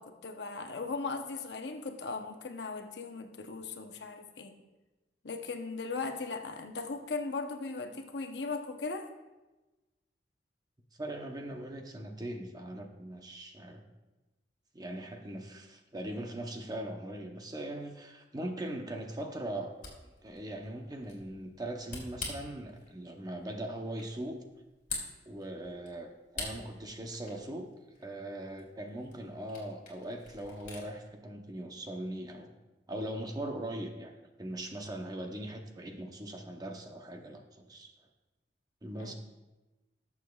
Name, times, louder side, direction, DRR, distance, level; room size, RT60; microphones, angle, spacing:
voice 1, 0.0-4.6 5.2-9.1 39.0-39.1, left 4 dB, 65° left, 5 dB, 0.8 m, -38 dB
voice 2, 11.0-13.8 14.7-19.7 20.2-24.4 25.3-27.7 28.0-32.5 32.9-34.1 34.4-37.9 38.8-39.1, right 1 dB, 20° right, 4 dB, 0.8 m, -40 dB
Camera, 19.5-30.9, left 3 dB, 45° left, 2.6 m, -47 dB
18.0 x 7.1 x 2.3 m, 1.1 s
head